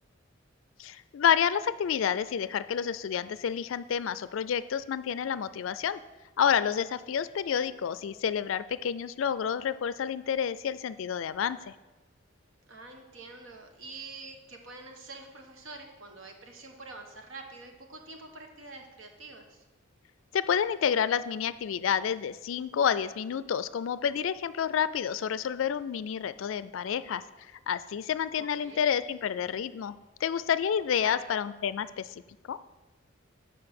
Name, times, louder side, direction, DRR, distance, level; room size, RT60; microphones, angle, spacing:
voice 1, 0.8-6.0 6.4-11.7 20.3-27.2 27.7-29.9 30.2-32.1 32.5-32.6, left 8 dB, 75° left, 15 dB, 0.4 m, -29 dB
voice 2, 12.7-19.6 28.4-28.9 31.0-31.2, right 3 dB, 75° right, 4 dB, 1.2 m, -46 dB
7.7 x 5.2 x 5.9 m, 1.1 s
head